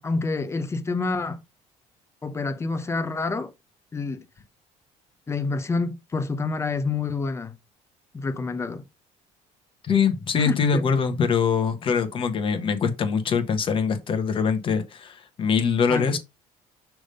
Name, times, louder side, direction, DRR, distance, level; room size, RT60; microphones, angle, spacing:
voice 1, 0.0-1.4 2.2-3.5 3.9-4.2 5.3-7.6 8.1-8.8 10.4-10.8 15.9-16.2, left 4 dB, 20° left, 0.8 m, -28 dB
voice 2, 9.8-16.2, left 6 dB, 40° left, 1.2 m, -23 dB
6.1 x 3.4 x 5.3 m
cardioid pair, 130°, 14 cm